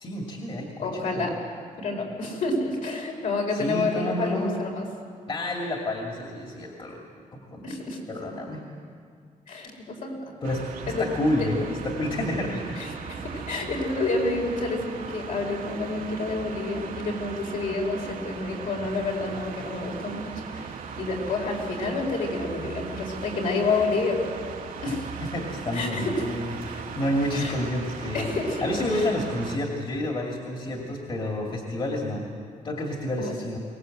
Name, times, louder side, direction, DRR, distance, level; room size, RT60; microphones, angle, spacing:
voice 1, 0.0-1.3 3.5-4.6 5.3-7.0 7.3-7.8 8.1-8.6 10.4-12.8 13.3-13.4 24.9-25.0 25.3-28.3 28.6-32.3 32.6-33.6, left 1 dB, 40° left, 0 dB, 2.4 m, -29 dB
voice 2, 0.8-1.3 1.8-4.9 7.6-8.0 9.5-10.1 10.9-11.0 11.4-11.5 12.8-24.2 24.8-25.0 25.7-26.2 27.3-27.5 28.1-28.6 28.9-29.1 33.2-33.3, left 3 dB, 70° left, 0 dB, 4.7 m, -29 dB
sound 1, 10.4-29.6, right 6 dB, 90° right, 2.2 m, -38 dB
23.0 x 19.5 x 7.8 m, 2.2 s
wide cardioid pair, 165°, 14 cm